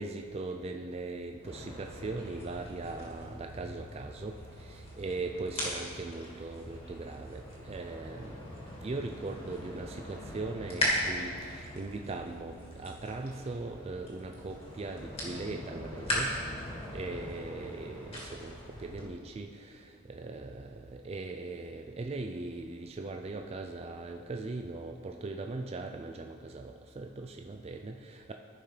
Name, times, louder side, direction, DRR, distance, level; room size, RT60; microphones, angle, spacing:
voice 1, 0.0-8.4 8.8-16.4 16.9-28.3, right 3 dB, 30° right, 4 dB, 0.4 m, -40 dB
sound 1, 1.4-19.0, left 1 dB, 30° left, 2.1 m, -39 dB
14.5 x 5.7 x 3.3 m, 2.1 s
head